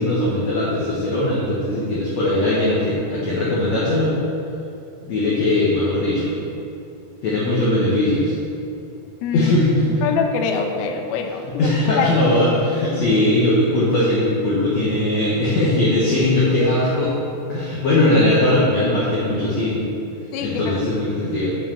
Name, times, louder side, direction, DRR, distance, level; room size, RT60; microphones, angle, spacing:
voice 1, 0.0-4.2 5.0-6.3 7.2-8.3 9.3-9.8 11.6-17.1 17.5-19.8 20.4-21.6, left 1 dB, 60° left, -7 dB, 2.0 m, -19 dB
voice 2, 9.2-9.5 10.0-11.7 11.9-12.1 20.3-20.8, left 6 dB, 80° left, 4 dB, 1.9 m, -24 dB
7.4 x 5.8 x 7.2 m, 2.8 s
omnidirectional pair, 4.5 m